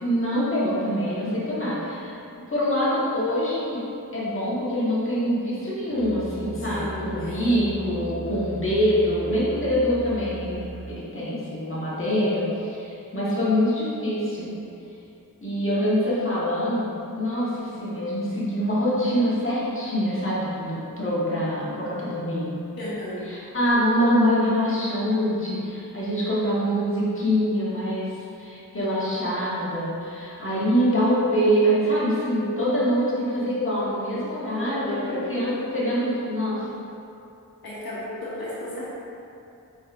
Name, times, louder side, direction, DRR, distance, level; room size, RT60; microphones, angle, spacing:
voice 1, 0.0-2.2 2.5-3.8 4.1-10.6 10.9-14.5 15.4-22.5 23.3-36.6, equal, 35° left, -8 dB, 1.5 m, -24 dB
Musical instrument, 5.9-11.0, right 2 dB, 20° left, 1.2 m, -38 dB
voice 2, 6.6-7.6 22.8-23.3 34.5-35.2 35.5-35.6 37.6-38.9, left 1 dB, 85° left, -8 dB, 1.1 m, -33 dB
5.0 x 4.1 x 2.5 m, 2.7 s
cardioid pair, 45°, 35 cm